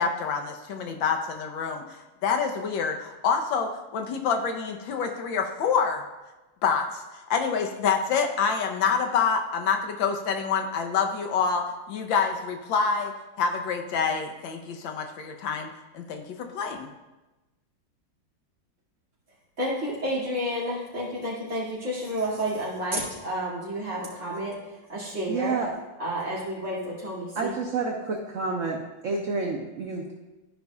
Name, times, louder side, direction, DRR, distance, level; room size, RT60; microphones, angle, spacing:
voice 1, 0.0-6.0 6.6-15.7 15.9-16.9, left 6 dB, 75° left, 4 dB, 1.4 m, -27 dB
voice 2, 19.6-24.6 24.9-25.6 26.0-27.5, equal, 35° right, -7 dB, 2.5 m, -30 dB
voice 3, 25.3-25.8 27.3-28.8 29.0-30.1, right 4 dB, 60° right, 0 dB, 0.8 m, -29 dB
13.5 x 5.2 x 2.3 m, 1.1 s
omnidirectional pair, 2.2 m